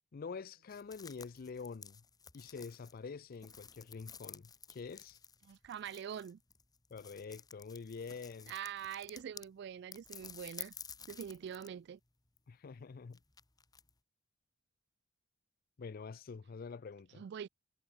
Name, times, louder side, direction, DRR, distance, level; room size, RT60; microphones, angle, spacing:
voice 1, 0.1-2.0 2.3-5.2 6.9-8.5 12.5-13.2 15.8-17.2, left 5 dB, 45° left, 0.4 m, -46 dB
sound 1, 0.7-9.5 9.9-11.8 12.1-13.9, left 6 dB, 20° left, 1.4 m, -53 dB
voice 2, 5.5-6.4 8.5-10.7 11.1-12.0 17.2-17.5, right 8 dB, 55° right, 0.3 m, -44 dB
head